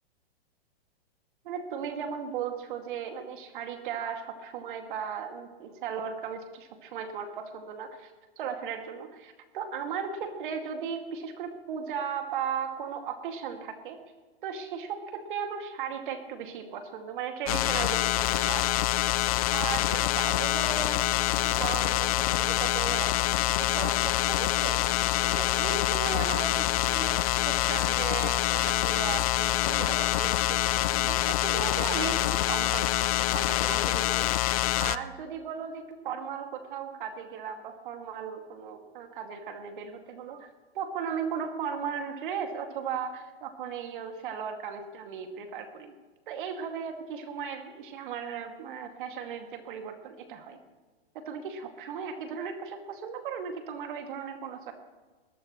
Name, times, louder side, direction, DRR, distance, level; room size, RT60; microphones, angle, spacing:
voice 1, 1.4-8.1 8.4-14.0 14.4-18.9 19.5-23.1 23.4-40.5 40.7-45.9 46.3-50.6 51.1-54.7, right 7 dB, 55° right, 5 dB, 2.4 m, -36 dB
sound 1, 17.5-35.0, left 15 dB, 40° left, 0.4 m, -26 dB
21.0 x 12.5 x 3.2 m, 1.3 s
hypercardioid pair, 145°, 31 cm